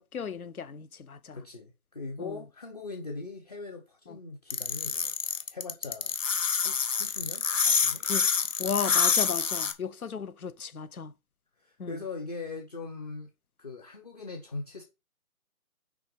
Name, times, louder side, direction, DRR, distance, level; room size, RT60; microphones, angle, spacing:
voice 1, 0.1-1.4 2.2-2.4 4.1-4.2 8.0-8.3 8.6-11.1 11.8-12.0, left 6 dB, 80° left, 1.1 m, -35 dB
voice 2, 1.3-6.2 6.6-8.0 11.6-13.3 13.6-14.8, left 3 dB, 30° left, 0.9 m, -41 dB
sound 1, 4.5-9.7, left 5 dB, 60° left, 1.4 m, -26 dB
6.2 x 5.0 x 5.3 m
hypercardioid pair, 170°, 42 cm